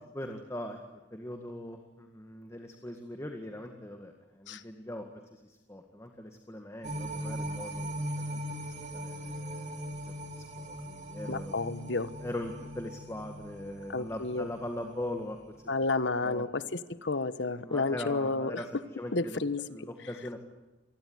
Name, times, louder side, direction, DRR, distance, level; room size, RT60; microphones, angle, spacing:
voice 1, 0.1-0.8 1.1-5.0 5.3-8.7 9.0-11.5 12.2-15.4 16.2-16.4 17.6-18.7 19.0-19.4 19.7-20.4, left 1 dB, 15° left, 4 dB, 1.9 m, -41 dB
sound 1, 6.8-15.2 15.6-15.7, equal, 40° right, 3.0 m, -40 dB
voice 2, 11.3-12.1 13.9-14.5 15.7-18.8 19.1-19.9, left 3 dB, 75° left, 13 dB, 1.3 m, -31 dB
27.0 x 20.5 x 9.6 m, 1.0 s
head